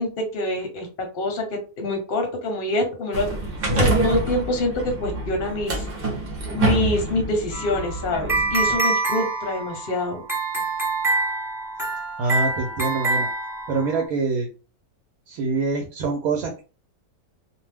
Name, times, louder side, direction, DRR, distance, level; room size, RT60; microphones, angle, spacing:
voice 1, 0.0-3.4 3.8-5.9 6.5-10.2, left 2 dB, 50° left, 2 dB, 0.7 m, -26 dB
sound 1, 3.1-8.8, right 2 dB, 50° right, 0.8 m, -26 dB
sound 2, 7.5-14.0, right 3 dB, ahead, 0.6 m, -26 dB
voice 2, 12.2-13.3 13.7-14.5 15.3-16.6, right 3 dB, 75° right, 1 dB, 1.0 m, -25 dB
2.5 x 2.0 x 3.3 m, 0.34 s
omnidirectional pair, 1.6 m